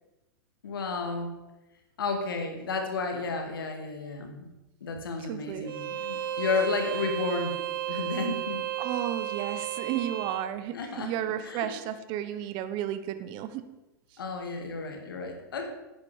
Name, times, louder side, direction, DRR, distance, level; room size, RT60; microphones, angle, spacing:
voice 1, 0.6-1.3 2.0-4.4 4.8-7.6 7.9-8.6 10.7-11.1 11.4-11.7 14.2-15.7, left 4 dB, 80° left, 4 dB, 2.2 m, -32 dB
voice 2, 5.2-5.7 8.8-13.6, right 11 dB, 45° right, 11 dB, 0.9 m, -33 dB
Bowed string instrument, 5.7-10.5, right 11 dB, 80° right, 0.7 m, -33 dB
10.5 x 9.0 x 5.0 m, 1.0 s
hypercardioid pair, 115°, 12 cm